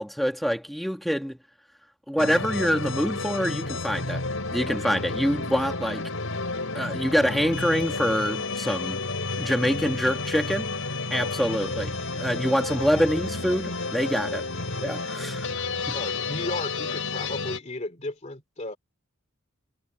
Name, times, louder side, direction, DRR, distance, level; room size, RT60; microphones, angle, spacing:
voice 1, 0.0-1.4 2.1-4.2 4.5-6.0 6.7-9.0 9.4-10.7 11.1-14.4 14.8-15.5 15.9-16.0, equal, ahead, 2.1 m, -25 dB
sound 1, 2.2-17.6, left 3 dB, 70° left, 4.7 m, -31 dB
voice 2, 15.9-18.8, left 2 dB, 35° left, 2.7 m, -34 dB
head